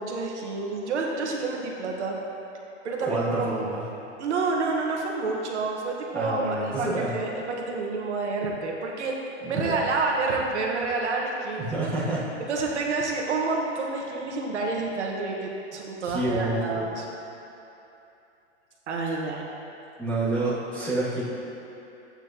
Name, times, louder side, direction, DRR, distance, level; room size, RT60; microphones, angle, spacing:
voice 1, 0.0-2.1 2.8-3.7 4.2-9.2 9.4-11.7 12.5-17.1 18.9-19.4, right 3 dB, 75° right, -1 dB, 1.5 m, -29 dB
voice 2, 3.0-3.8 6.1-7.2 9.4-9.8 11.6-12.3 16.0-16.9 20.0-21.2, right 2 dB, 5° left, -14 dB, 2.2 m, -28 dB
13.0 x 8.8 x 2.9 m, 2.9 s
hypercardioid pair, 175°, 35 cm